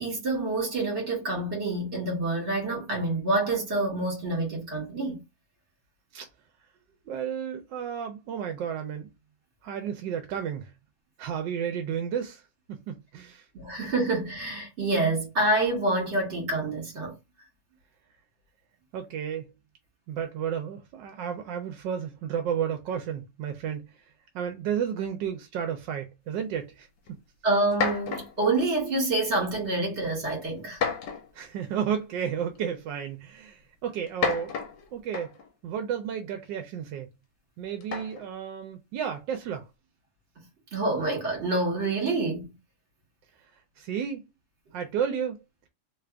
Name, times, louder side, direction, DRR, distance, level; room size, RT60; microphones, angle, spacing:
voice 1, 0.0-5.2 13.5-17.1 27.4-30.8 40.7-42.5, right 2 dB, 40° right, 2.1 m, -27 dB
voice 2, 7.1-9.1 9.6-10.7 11.2-12.4 12.7-13.4 18.9-19.5 20.1-23.9 24.3-26.9 31.3-34.5 34.9-35.3 35.6-37.1 37.6-39.7 43.8-44.2 44.7-45.4, right 8 dB, 80° right, 1.3 m, -32 dB
sound 1, 27.1-27.2 27.7-28.5 29.4-29.7 30.7-31.4 32.6-32.7 34.0-35.5 37.8-38.3, left 6 dB, 70° left, 1.4 m, -31 dB
3.3 x 3.3 x 2.4 m
omnidirectional pair, 2.0 m